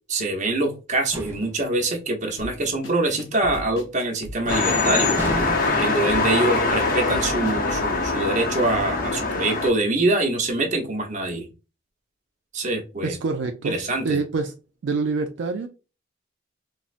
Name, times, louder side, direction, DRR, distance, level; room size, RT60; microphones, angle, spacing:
voice 1, 0.1-5.2 5.8-11.5 12.5-13.1 13.6-14.2, right 2 dB, 40° right, 0.8 m, -24 dB
sound 1, 1.1-1.7 5.2-6.0, equal, 15° right, 0.5 m, -31 dB
sound 2, 2.4-7.9, equal, 90° left, 0.6 m, -38 dB
sound 3, 4.5-9.7, left 3 dB, 50° left, 0.7 m, -23 dB
voice 2, 13.0-13.8 14.0-14.5 14.8-15.7, right 4 dB, 70° right, 0.4 m, -26 dB
4.1 x 2.0 x 2.4 m
head